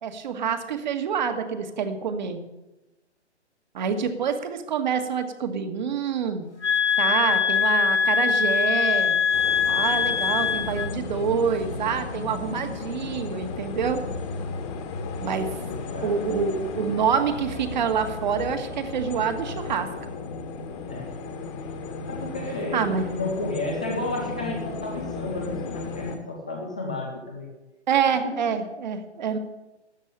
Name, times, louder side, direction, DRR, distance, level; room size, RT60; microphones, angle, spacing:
voice 1, 0.0-2.4 3.7-6.5 7.0-9.2 9.7-14.0 15.2-15.5 16.0-19.9 22.7-23.1 27.9-29.4, right 6 dB, 40° right, 7 dB, 1.7 m, -26 dB
sound 1, 6.6-10.9, left 7 dB, 75° left, 1.1 m, -22 dB
sound 2, 9.3-26.2, left 4 dB, 25° left, 1.6 m, -34 dB
voice 2, 15.1-16.2 20.9-21.1 22.1-27.5 28.0-28.5, left 2 dB, 5° left, 0 dB, 0.4 m, -33 dB
13.0 x 8.2 x 10.0 m, 1.0 s
figure-of-eight pair, 135°, 35 cm